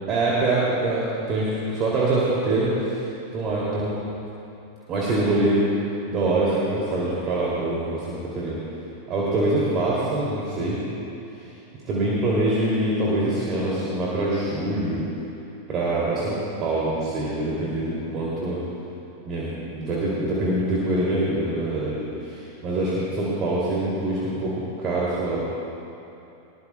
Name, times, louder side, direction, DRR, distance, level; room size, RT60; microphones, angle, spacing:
voice 1, 0.1-3.1 3.3-4.0 4.9-5.6 6.1-8.6 9.1-10.8 11.8-15.1 15.7-18.6 19.3-25.4, right 2 dB, 30° right, -6 dB, 2.8 m, -24 dB
21.0 x 19.5 x 2.3 m, 2.9 s
figure-of-eight pair, 90°, 0 cm